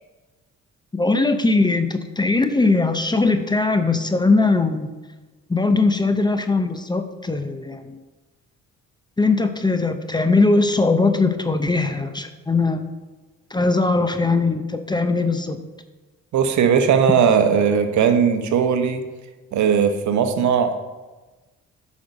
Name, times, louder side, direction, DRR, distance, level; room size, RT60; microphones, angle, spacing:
voice 1, 0.9-4.9 5.5-8.0 9.2-12.9 13.5-15.6, left 3 dB, 15° left, 8 dB, 0.7 m, -20 dB
voice 2, 16.3-19.0 19.5-20.8, right 7 dB, 70° right, 7 dB, 1.0 m, -18 dB
8.6 x 5.3 x 5.3 m, 1.2 s
cardioid pair, 90°, 30 cm